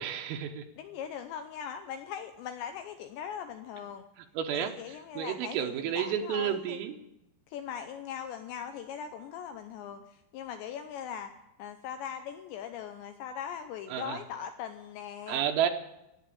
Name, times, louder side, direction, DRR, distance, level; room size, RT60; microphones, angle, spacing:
voice 1, 0.0-0.7 4.4-7.0 13.9-14.2 15.3-15.7, right 9 dB, 80° right, 3 dB, 3.6 m, -31 dB
voice 2, 0.8-4.0 4.5-6.8 7.5-15.4, left 8 dB, 85° left, 7 dB, 2.5 m, -40 dB
16.5 x 8.7 x 8.5 m, 0.88 s
omnidirectional pair, 6.0 m